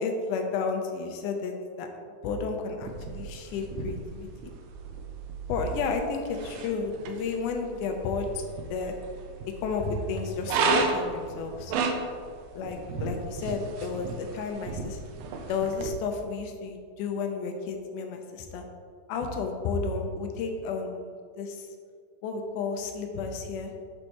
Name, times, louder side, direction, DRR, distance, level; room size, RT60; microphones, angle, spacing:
voice 1, 0.0-1.9 2.2-4.3 5.5-8.4 8.7-8.9 9.6-11.7 12.5-15.0 15.5-18.6 19.1-21.7 22.2-23.7, left 4 dB, 90° left, 4 dB, 2.3 m, -32 dB
sound 1, 2.8-15.9, right 3 dB, 80° right, 2.1 m, -34 dB
10.5 x 5.4 x 3.0 m, 2.1 s
omnidirectional pair, 3.5 m